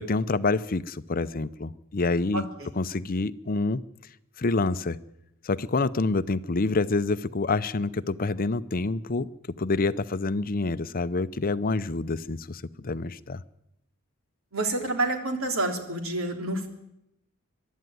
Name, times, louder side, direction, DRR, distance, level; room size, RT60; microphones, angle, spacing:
voice 1, 0.0-2.4 2.8-3.8 4.4-5.0 5.4-9.3 9.6-13.4, left 3 dB, 45° left, 15 dB, 0.6 m, -27 dB
voice 2, 2.3-2.7 14.5-16.7, right 2 dB, 80° right, 4 dB, 3.4 m, -28 dB
23.0 x 12.0 x 9.3 m, 0.83 s
head